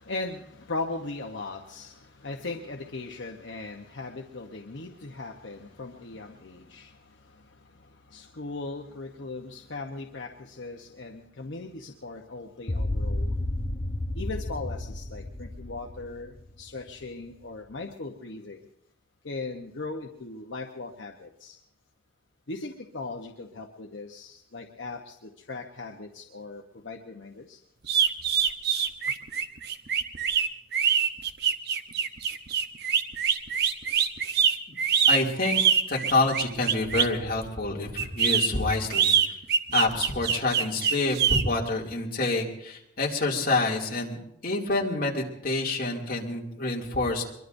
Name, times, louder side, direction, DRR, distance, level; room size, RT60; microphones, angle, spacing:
voice 1, 0.0-13.4 14.1-18.6 19.2-21.6 22.5-27.6, left 3 dB, 65° left, 2 dB, 1.0 m, -39 dB
sound 1, 12.7-17.0, left 1 dB, 30° left, 0.7 m, -31 dB
sound 2, 27.8-37.2 38.0-41.4, right 7 dB, 55° right, 0.8 m, -24 dB
voice 2, 35.1-35.6 35.9-39.1 39.7-47.2, left 2 dB, 45° left, -2 dB, 2.5 m, -27 dB
23.5 x 22.5 x 2.6 m, 0.79 s
head